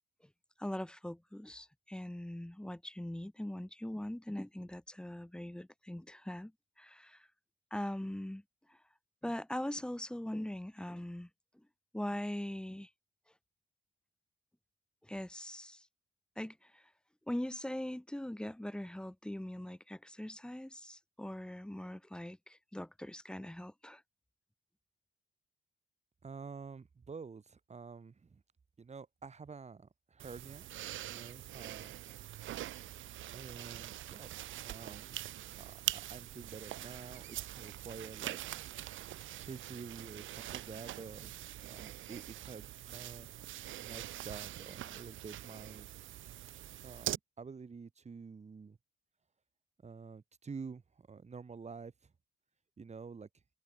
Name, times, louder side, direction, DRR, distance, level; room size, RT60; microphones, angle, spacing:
voice 1, 0.6-6.5 6.8-7.3 7.7-8.4 8.7-8.8 9.2-11.3 11.9-12.9 15.0-15.9 16.4-16.8 17.3-24.0, left 1 dB, 5° left, 0.9 m, -41 dB
voice 2, 26.2-28.4 28.8-30.7 31.1-31.9 33.3-34.3 34.6-35.2 35.6-38.5 39.3-41.4 41.6-45.9 46.8-48.8 49.8-52.1 52.8-53.3, right 5 dB, 35° right, 3.9 m, -49 dB
sound 1, 30.2-47.2, right 14 dB, 80° right, 1.4 m, -44 dB
cardioid pair, 90°, 20 cm